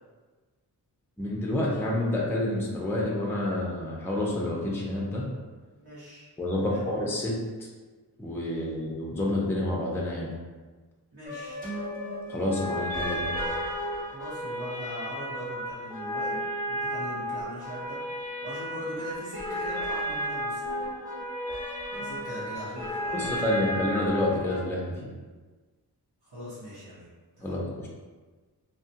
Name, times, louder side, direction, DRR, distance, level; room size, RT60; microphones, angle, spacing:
voice 1, 1.2-5.2 6.4-7.4 8.2-10.3 12.3-13.4 23.1-25.1 27.4-27.9, left 1 dB, 5° left, -4 dB, 0.4 m, -28 dB
voice 2, 5.8-6.3 6.6-6.8 11.1-11.6 14.1-16.4 16.7-20.6 21.9-23.2 26.2-27.1 27.4-27.6, equal, 70° right, -13 dB, 1.3 m, -41 dB
sound 1, 11.3-24.6, equal, 20° right, 1.1 m, -33 dB
2.8 x 2.3 x 2.7 m, 1.3 s
wide cardioid pair, 105°, 39 cm